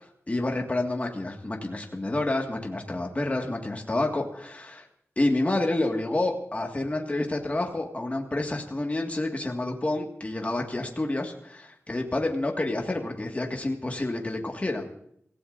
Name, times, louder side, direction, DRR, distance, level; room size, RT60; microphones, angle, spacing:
voice 1, 0.0-4.9 5.2-14.9, left 2 dB, 30° left, 2 dB, 1.9 m, -29 dB
25.5 x 16.0 x 2.6 m, 0.69 s
wide cardioid pair, 90°, 5 cm